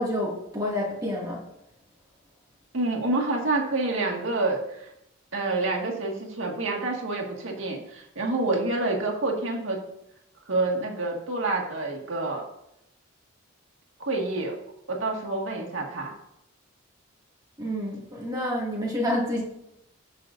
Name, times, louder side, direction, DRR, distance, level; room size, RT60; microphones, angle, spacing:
voice 1, 0.0-1.4 17.6-19.4, left 1 dB, 20° right, -4 dB, 2.1 m, -28 dB
voice 2, 2.7-4.9 5.3-9.8 10.5-12.4 14.0-14.6 14.9-16.1, right 2 dB, 70° right, 0 dB, 1.8 m, -28 dB
16.5 x 5.9 x 2.6 m, 0.82 s
head